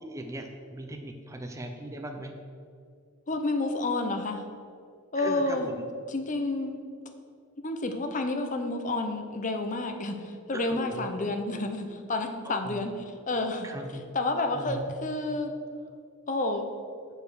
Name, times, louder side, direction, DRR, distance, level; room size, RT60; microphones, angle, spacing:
voice 1, 0.0-2.3 5.2-5.8 10.5-11.1 12.4-12.8 13.6-14.0 14.5-14.9, right 1 dB, 15° right, 4 dB, 0.5 m, -39 dB
voice 2, 3.3-4.4 5.1-5.7 6.1-6.8 7.6-12.9 13.3-13.7 14.1-15.5 16.3-16.7, left 2 dB, 35° left, 5 dB, 0.7 m, -30 dB
6.6 x 5.4 x 6.3 m, 2.3 s
head